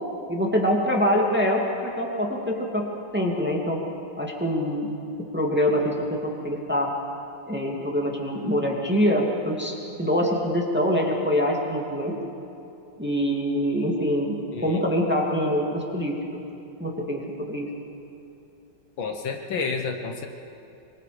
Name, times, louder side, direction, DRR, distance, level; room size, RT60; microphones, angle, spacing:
voice 1, 0.3-2.9 3.1-3.8 4.2-4.9 5.3-6.9 7.5-12.1 13.0-16.2 16.8-17.7, equal, 5° right, -1 dB, 2.1 m, -24 dB
voice 2, 19.0-20.3, left 5 dB, 70° left, 4 dB, 2.0 m, -30 dB
24.5 x 24.0 x 5.0 m, 2.9 s
omnidirectional pair, 2.3 m